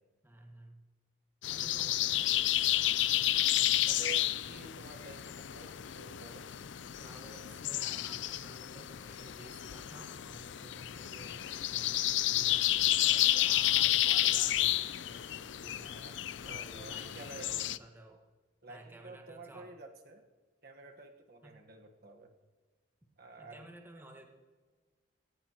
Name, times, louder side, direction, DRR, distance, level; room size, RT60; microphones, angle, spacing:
voice 1, 0.2-0.8 1.5-3.4 4.1-4.3 7.0-12.9 13.4-15.9 16.4-18.2 18.7-19.7 21.4-21.6 23.4-24.2, right 1 dB, 10° right, 2 dB, 1.5 m, -54 dB
sound 1, 1.4-17.8, left 14 dB, 75° left, 0.5 m, -31 dB
voice 2, 3.9-6.5 12.9-13.5 15.8-16.1 16.4-17.5 18.6-20.2 20.6-22.3 23.2-23.7, right 3 dB, 55° right, 3 dB, 1.4 m, -50 dB
18.0 x 15.5 x 3.0 m, 1.4 s
head